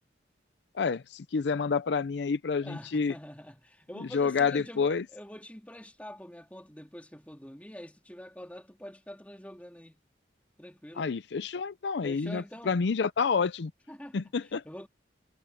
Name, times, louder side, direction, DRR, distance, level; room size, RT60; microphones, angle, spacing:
voice 1, 0.8-3.1 4.0-5.0 11.0-13.7 14.1-14.6, left 5 dB, 75° left, 0.5 m, -28 dB
voice 2, 2.6-10.0 10.6-11.2 12.0-12.8 13.9-14.9, equal, 10° left, 2.5 m, -46 dB
head